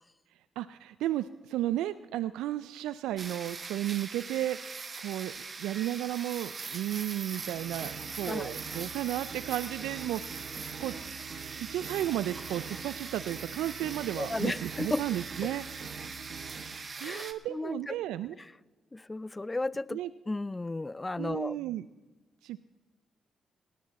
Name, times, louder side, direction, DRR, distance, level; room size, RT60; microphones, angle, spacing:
voice 1, 0.6-10.2 10.8-11.0 11.6-15.7 17.0-18.4 19.9-20.1 21.2-21.8 22.4-22.6, right 13 dB, 90° right, 12 dB, 0.3 m, -33 dB
sound 1, 3.2-17.3, right 4 dB, 45° right, 1.2 m, -41 dB
sound 2, 7.3-16.9, right 7 dB, 60° right, 0.8 m, -45 dB
sound 3, 7.4-11.3 11.6-11.8 12.2-13.0 13.9-14.1, right 1 dB, ahead, 5.1 m, -60 dB
voice 2, 8.2-8.5 14.2-15.0 15.4-15.5 17.0-17.9 18.9-20.0 20.3-21.6, left 2 dB, 25° left, 23 dB, 0.4 m, -34 dB
17.5 x 10.5 x 4.1 m, 1.2 s
supercardioid pair, 55°, 0 cm